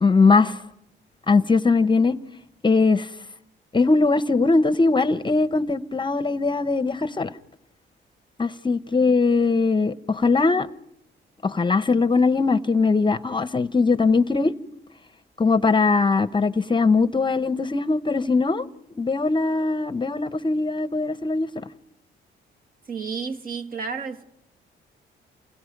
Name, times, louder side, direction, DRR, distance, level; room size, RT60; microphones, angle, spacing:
voice 1, 0.0-0.6 1.3-2.2 2.6-3.1 3.7-7.3 8.4-10.7 11.4-14.5 15.4-18.7 19.0-21.6, left 4 dB, 25° left, 0.8 m, -20 dB
voice 2, 22.9-24.2, right 5 dB, 45° right, 1.7 m, -31 dB
29.5 x 26.0 x 5.3 m
cardioid pair, 90°, 20 cm